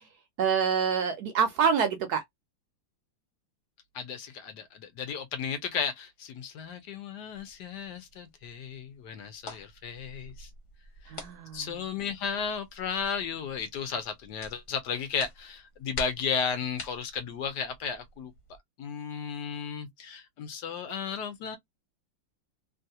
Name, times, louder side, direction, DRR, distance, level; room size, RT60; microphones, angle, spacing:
voice 1, 0.4-2.2 11.1-11.6, right 6 dB, 70° right, 1.0 m, -26 dB
voice 2, 3.9-10.5 11.0-11.1 11.5-18.3 18.8-21.6, left 6 dB, 70° left, 1.1 m, -34 dB
sound 1, 7.3-18.6, left 2 dB, 45° left, 1.2 m, -47 dB
3.1 x 2.4 x 2.7 m
omnidirectional pair, 2.1 m